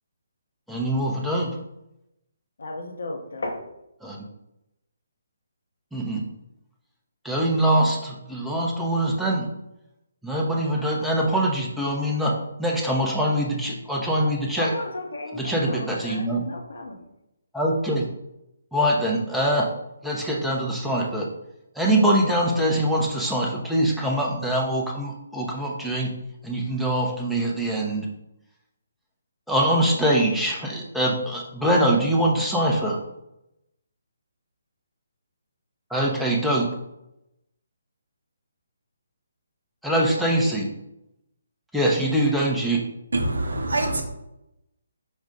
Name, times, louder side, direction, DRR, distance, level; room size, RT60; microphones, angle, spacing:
voice 1, 0.7-1.5 4.0-4.2 5.9-6.2 7.2-9.5 10.2-12.3 12.6-14.7 15.4-16.4 17.5-18.1 18.7-19.7 20.0-21.3 21.7-26.1 26.4-28.1 29.5-33.0 35.9-36.7 39.8-40.7 41.7-42.8, right 1 dB, ahead, -3 dB, 0.7 m, -23 dB
voice 2, 2.6-3.6 14.6-17.1, left 2 dB, 70° left, 2 dB, 0.9 m, -34 dB
voice 3, 43.1-44.0, right 2 dB, 75° right, 5 dB, 0.8 m, -24 dB
5.2 x 2.4 x 3.8 m, 0.87 s
figure-of-eight pair, 145°, 0 cm